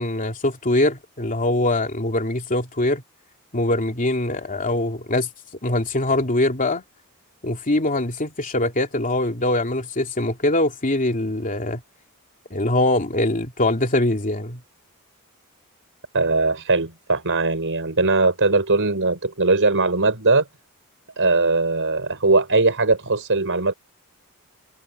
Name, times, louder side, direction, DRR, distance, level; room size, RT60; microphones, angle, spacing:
voice 1, 0.0-3.0 3.5-5.3 5.6-6.8 7.4-11.8 12.5-14.6, left 1 dB, 35° left, 2.8 m, -22 dB
voice 2, 16.1-20.4 21.2-23.7, right 3 dB, 60° right, 5.8 m, -20 dB
head